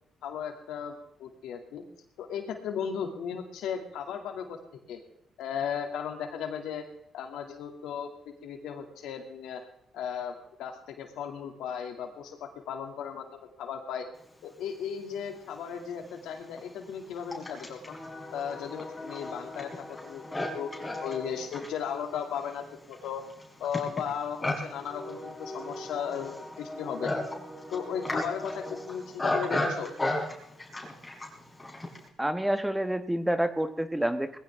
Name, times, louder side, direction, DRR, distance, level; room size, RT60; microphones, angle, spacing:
voice 1, 0.2-1.8 2.2-4.6 4.9-5.0 5.4-6.8 7.1-9.6 9.9-14.1 14.4-18.0 18.3-20.2 20.5-20.7 21.0-23.2 23.6-27.1 27.7-29.9, left 7 dB, 85° left, 4 dB, 2.5 m, -36 dB
Livestock farm animals working animals, 15.3-15.4 16.2-32.1, left 1 dB, 15° left, 4.7 m, -35 dB
voice 2, 32.2-34.4, right 1 dB, 5° right, 10 dB, 1.2 m, -28 dB
20.5 x 15.5 x 3.6 m, 0.76 s
cardioid pair, 90°, 0 cm